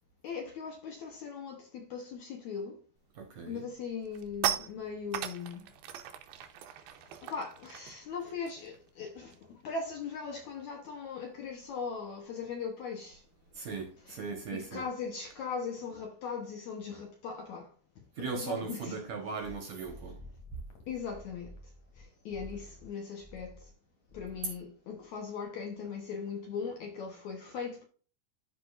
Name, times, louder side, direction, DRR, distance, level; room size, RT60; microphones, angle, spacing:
voice 1, 0.2-2.8 3.5-5.7 7.2-13.2 13.6-13.7 14.1-14.2 14.5-17.7 18.3-19.0 20.9-21.5 22.0-23.7 24.1-27.8, left 5 dB, 70° left, 1.8 m, -39 dB
sound 1, 3.0-3.3 3.7-9.6 9.9-10.1 10.4-15.4, right 10 dB, 90° right, 2.8 m, -41 dB
voice 2, 3.1-3.7 13.5-14.9 18.1-20.2, right 5 dB, 60° right, 2.0 m, -38 dB
sound 2, 19.4-22.0 22.3-22.9 23.2-23.7 24.1-24.6, left 1 dB, 50° left, 2.8 m, -50 dB
12.5 x 5.1 x 2.5 m
omnidirectional pair, 4.5 m